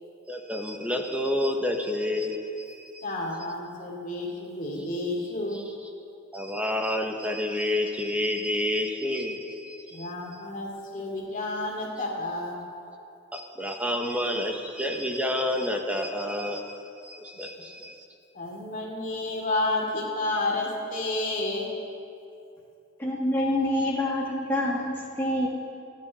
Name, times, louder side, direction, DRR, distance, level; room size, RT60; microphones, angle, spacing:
voice 1, 0.3-3.0 6.3-10.1 13.3-18.0, left 1 dB, 5° right, 2 dB, 1.3 m, -29 dB
voice 2, 3.0-5.6 9.9-12.6 18.3-21.7, left 2 dB, 40° left, -2 dB, 2.8 m, -30 dB
voice 3, 23.0-25.5, left 1 dB, 10° left, -6 dB, 1.8 m, -26 dB
30.0 x 10.5 x 4.3 m, 2.6 s
head